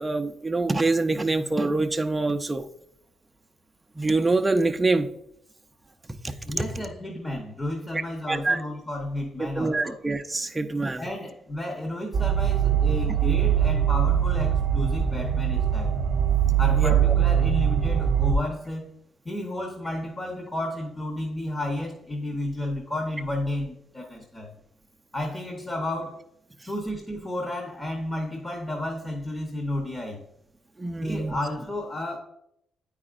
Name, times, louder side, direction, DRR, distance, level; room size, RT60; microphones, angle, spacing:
voice 1, 0.0-2.6 4.0-5.1 6.2-6.6 7.9-8.0 8.3-8.6 9.6-11.0 16.8-17.0 30.8-31.4, right 3 dB, 15° right, 6 dB, 0.5 m, -25 dB
voice 2, 6.4-10.0 11.0-16.0 16.6-19.0 19.2-24.5 25.1-26.2 26.7-30.2 31.0-32.2, left 1 dB, 20° left, 1 dB, 0.9 m, -32 dB
sound 1, 12.1-18.3, right 9 dB, 55° right, 0.8 m, -22 dB
8.6 x 4.9 x 2.5 m, 0.75 s
cardioid pair, 90°, 0 cm